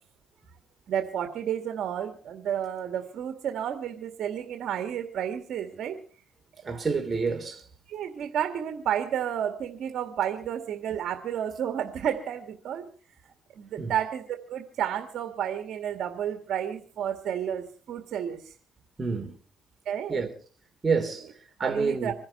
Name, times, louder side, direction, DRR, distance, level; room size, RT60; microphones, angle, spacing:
voice 1, 0.9-6.0 6.7-6.8 7.9-12.8 13.5-18.5 19.9-20.2 21.6-22.1, right 9 dB, 70° right, 2.1 m, -31 dB
voice 2, 6.6-7.7 13.8-13.9 19.0-19.4 20.1-20.3 20.8-21.3 21.6-22.1, right 4 dB, 30° right, 3.7 m, -28 dB
26.0 x 10.5 x 4.5 m
cardioid pair, 90°, 0 cm